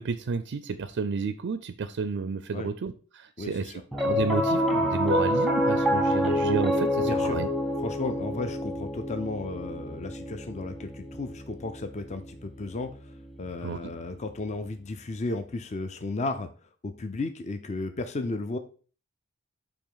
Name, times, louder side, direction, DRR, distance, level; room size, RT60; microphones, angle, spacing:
voice 1, 0.0-7.5 13.6-13.8, right 5 dB, 60° right, 11 dB, 0.4 m, -31 dB
voice 2, 3.4-3.8 7.0-7.4 7.8-13.1 13.4-16.5 16.8-18.6, left 3 dB, 35° left, 8 dB, 0.5 m, -34 dB
Piano, 3.9-14.4, equal, ahead, 0.8 m, -28 dB
7.0 x 3.0 x 5.5 m, 0.39 s
head